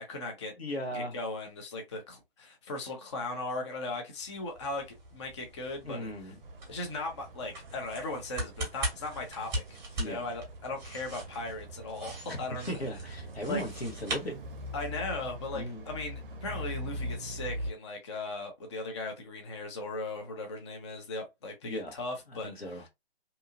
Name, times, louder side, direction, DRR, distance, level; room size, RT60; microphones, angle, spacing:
voice 1, 0.0-0.5 0.9-6.1 6.7-12.7 13.5-13.6 14.7-22.5, left 2 dB, 30° left, 0.5 m, -38 dB
voice 2, 0.6-1.2 5.8-6.4 10.0-10.3 12.3-14.4 15.5-15.8 21.6-22.0 22.3-22.9, equal, 80° left, 1.2 m, -37 dB
sound 1, 4.2-15.0, right 1 dB, 10° right, 0.9 m, -41 dB
sound 2, 6.4-17.7, equal, 60° right, 0.5 m, -43 dB
2.8 x 2.3 x 2.5 m
figure-of-eight pair, 135°, 30 cm